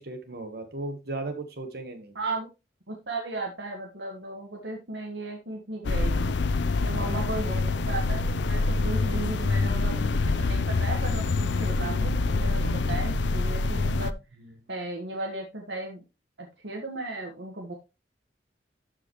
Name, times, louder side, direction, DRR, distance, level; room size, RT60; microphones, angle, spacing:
voice 1, 0.0-2.2 6.9-7.3 14.4-14.5, right 2 dB, 60° right, 7 dB, 1.4 m, -36 dB
voice 2, 2.2-2.5 2.9-6.3 6.8-14.1 14.7-16.0 16.4-17.7, right 2 dB, 80° right, 1 dB, 1.7 m, -35 dB
sound 1, 5.8-14.1, left 3 dB, 75° left, 0.5 m, -26 dB
13.5 x 5.0 x 3.1 m, 0.27 s
head